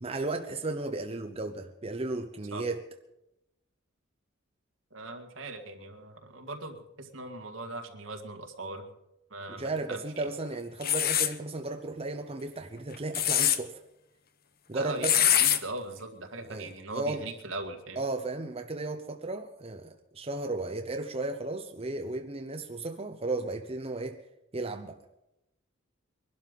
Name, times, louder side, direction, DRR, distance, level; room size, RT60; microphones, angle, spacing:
voice 1, 0.0-2.8 9.5-13.8 14.7-15.2 16.5-17.3 18.0-24.2 24.5-25.0, right 2 dB, 30° right, 0.9 m, -34 dB
voice 2, 4.9-8.9 9.3-10.3 14.7-18.0, right 2 dB, 75° right, 2.0 m, -40 dB
sound 1, 10.8-11.3 12.9-13.6 15.0-15.6, left 10 dB, 50° left, 0.9 m, -23 dB
22.0 x 12.0 x 5.4 m
head